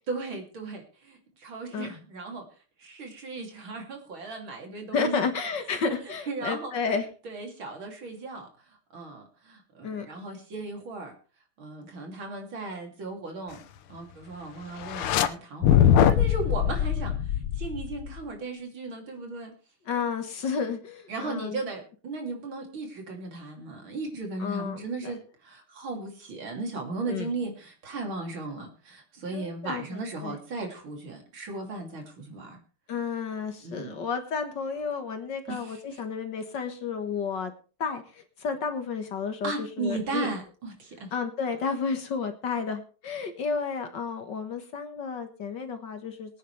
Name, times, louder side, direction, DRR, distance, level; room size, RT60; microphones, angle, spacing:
voice 1, 0.1-2.5 2.8-5.3 6.3-6.7 7.2-8.5 8.9-11.1 11.6-13.6 13.9-17.1 17.6-19.5 21.1-32.6 33.6-34.0 35.5-36.0 39.4-41.1, right 3 dB, 70° right, 2 dB, 3.6 m, -36 dB
voice 2, 4.9-7.1 9.8-10.1 15.8-16.2 19.9-21.6 24.4-25.1 27.1-27.3 29.3-30.4 32.9-37.5 37.8-40.3 41.1-46.4, left 5 dB, 60° left, 7 dB, 2.0 m, -32 dB
sound 1, 14.8-15.3 15.6-18.2, left 10 dB, 80° left, 1.7 m, -22 dB
22.5 x 9.4 x 3.3 m, 0.37 s
omnidirectional pair, 2.3 m